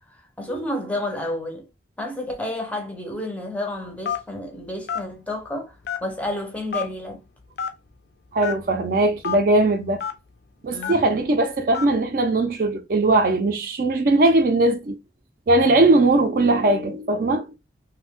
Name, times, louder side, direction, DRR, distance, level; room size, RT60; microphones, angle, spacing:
voice 1, 0.4-1.7 2.0-7.2 10.7-11.1, left 1 dB, 10° left, 0.5 m, -30 dB
Telephone, 4.1-4.4 4.9-5.1 5.8-6.2 6.7-6.8 7.6-7.7 8.4-8.6 9.2-9.4 10.0-10.1 10.8-11.1 11.7-11.9, left 7 dB, 65° left, 0.4 m, -27 dB
voice 2, 8.3-10.0 10.6-15.0 15.5-17.5, right 2 dB, 50° right, 0.4 m, -19 dB
2.5 x 2.1 x 3.4 m
head